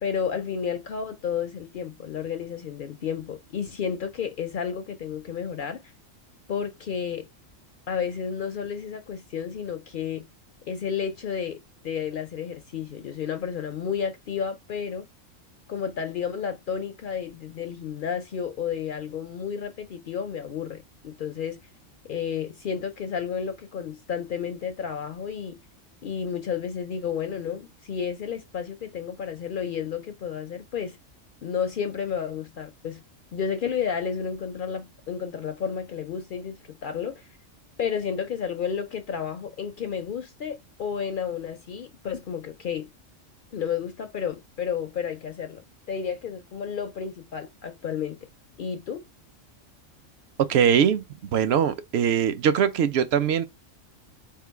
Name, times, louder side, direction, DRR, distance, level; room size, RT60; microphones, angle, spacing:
voice 1, 0.0-5.8 6.5-7.3 7.9-10.3 10.7-11.6 11.8-15.0 15.7-21.6 22.1-25.6 26.0-31.0 31.4-33.0 33.3-37.3 37.8-42.9 43.5-48.2 48.6-49.0, left 7 dB, 60° left, 0.5 m, -31 dB
voice 2, 50.5-51.0 51.3-53.4, right 8 dB, 65° right, 0.7 m, -21 dB
3.7 x 2.3 x 4.5 m
omnidirectional pair, 1.3 m